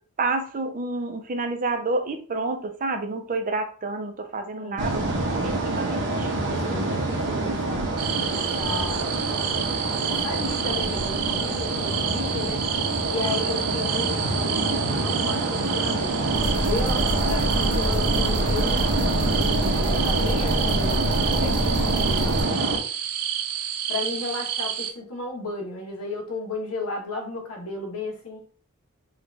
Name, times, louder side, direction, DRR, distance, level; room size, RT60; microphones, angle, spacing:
voice 1, 0.2-5.1 5.4-6.3, right 3 dB, 40° right, 6 dB, 0.6 m, -29 dB
voice 2, 4.6-5.1 6.0-7.9 8.3-9.3 10.1-12.6 13.0-16.2 16.6-22.7 23.9-28.4, left 3 dB, 70° left, 0 dB, 1.3 m, -34 dB
sound 1, 4.8-22.8, right 2 dB, 55° right, 0.9 m, -26 dB
sound 2, 8.0-24.9, right 9 dB, 85° right, 0.5 m, -30 dB
sound 3, 16.3-22.4, equal, 5° right, 1.0 m, -28 dB
4.0 x 2.5 x 3.2 m, 0.41 s
head